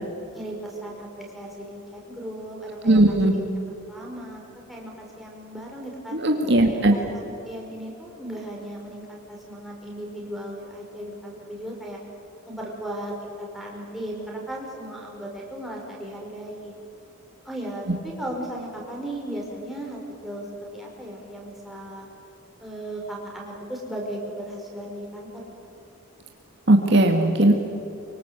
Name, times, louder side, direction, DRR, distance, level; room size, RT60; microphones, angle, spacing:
voice 1, 0.3-3.5 3.9-6.2 6.6-12.0 12.5-16.7 17.4-20.5 20.7-22.1 22.6-25.5, right 1 dB, ahead, -3 dB, 5.4 m, -36 dB
voice 2, 2.8-3.4 6.1-6.9 26.7-27.5, right 1 dB, 55° right, 3 dB, 2.0 m, -18 dB
25.0 x 24.5 x 8.3 m, 2.8 s
head